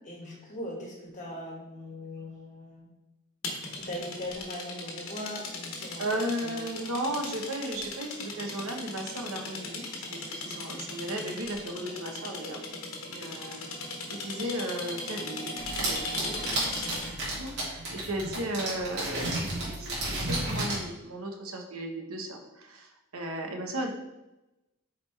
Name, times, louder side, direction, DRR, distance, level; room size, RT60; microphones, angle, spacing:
voice 1, 0.0-2.9 3.8-6.7 14.2-14.5, left 1 dB, 35° left, -1 dB, 1.7 m, -40 dB
sound 1, 3.4-17.2, left 2 dB, 70° left, 1.2 m, -38 dB
voice 2, 6.0-12.6 13.1-16.5 16.9-23.9, right 1 dB, 75° right, 3 dB, 1.1 m, -35 dB
sound 2, 15.6-20.8, right 2 dB, 55° right, 2.3 m, -32 dB
8.5 x 4.3 x 3.3 m, 0.98 s
head